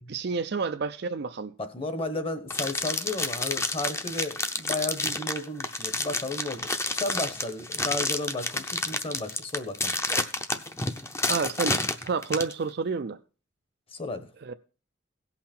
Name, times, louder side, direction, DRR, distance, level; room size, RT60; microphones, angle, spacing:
voice 1, 0.1-1.5 11.3-11.8 12.0-13.2 14.4-14.5, right 4 dB, 55° right, 0.4 m, -29 dB
voice 2, 1.6-9.9 13.9-14.3, left 2 dB, 30° left, 1.1 m, -33 dB
sound 1, 2.5-12.5, left 2 dB, 15° left, 0.7 m, -29 dB
17.0 x 5.7 x 4.3 m
head